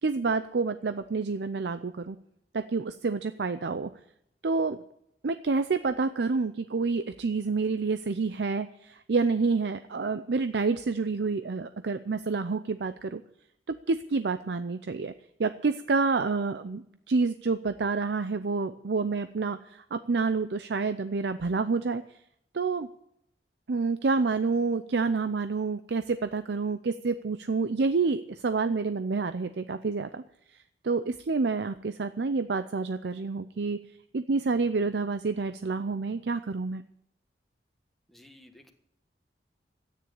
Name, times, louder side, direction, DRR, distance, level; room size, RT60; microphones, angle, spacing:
voice 1, 0.0-2.2 2.5-3.9 4.4-4.8 5.2-13.2 13.7-15.1 15.4-22.0 22.5-22.9 23.7-30.2 30.8-33.8 34.1-36.8, right 4 dB, 75° right, 11 dB, 0.5 m, -28 dB
voice 2, 38.1-38.7, left 1 dB, ahead, 4 dB, 1.5 m, -54 dB
13.0 x 9.6 x 8.7 m, 0.76 s
head